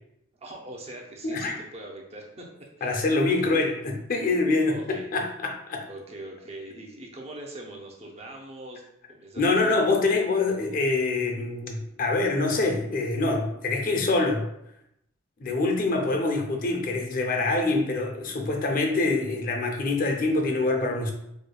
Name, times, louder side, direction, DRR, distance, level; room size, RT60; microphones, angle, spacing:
voice 1, 0.4-3.1 3.4-3.5 4.6-5.1 5.9-8.8 9.1-10.1, right 1 dB, 30° right, -1 dB, 0.6 m, -42 dB
voice 2, 1.2-1.6 2.8-5.9 9.4-14.5 15.4-21.1, left 3 dB, 45° left, 3 dB, 0.5 m, -25 dB
4.9 x 2.2 x 2.3 m, 0.78 s
head